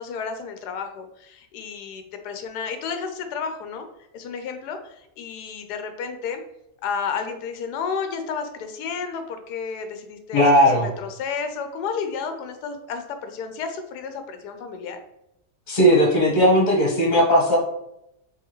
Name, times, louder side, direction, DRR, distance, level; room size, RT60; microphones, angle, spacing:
voice 1, 0.0-3.9 4.1-6.4 6.8-15.0, left 6 dB, 90° left, 7 dB, 1.2 m, -32 dB
voice 2, 10.3-10.9 15.7-17.6, equal, 30° left, -2 dB, 1.3 m, -17 dB
4.7 x 3.3 x 3.0 m, 0.85 s
omnidirectional pair, 1.7 m